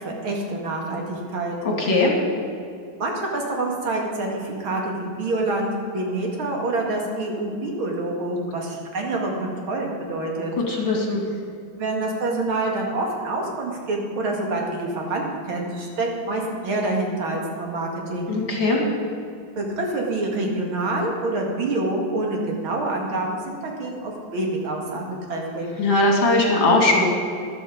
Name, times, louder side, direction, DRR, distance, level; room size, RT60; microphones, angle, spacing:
voice 1, 0.0-1.6 3.0-10.5 11.8-18.3 19.6-25.7, right 2 dB, 85° right, 0 dB, 2.9 m, -27 dB
voice 2, 1.6-2.1 10.7-11.2 18.3-18.8 25.8-27.1, left 2 dB, 70° left, 0 dB, 3.2 m, -19 dB
13.0 x 12.0 x 5.1 m, 2.5 s
omnidirectional pair, 2.2 m